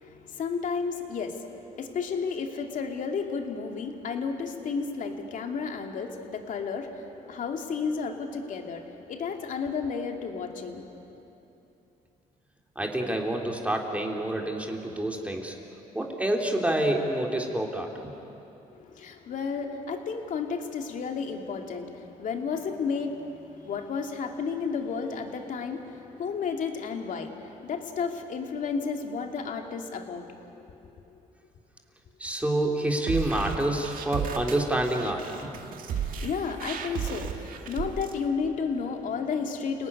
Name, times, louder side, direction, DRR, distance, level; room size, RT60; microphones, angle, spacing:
voice 1, 0.0-1.4 1.8-11.2 18.8-30.3 35.9-39.9, left 5 dB, 60° left, 3 dB, 2.6 m, -32 dB
voice 2, 12.7-15.5 15.9-18.1 32.2-35.5, right 1 dB, 10° right, 1 dB, 3.1 m, -28 dB
sound 1, 33.0-38.1, right 7 dB, 70° right, 1.9 m, -34 dB
30.0 x 18.5 x 9.7 m, 2.9 s
cardioid pair, 95°, 15 cm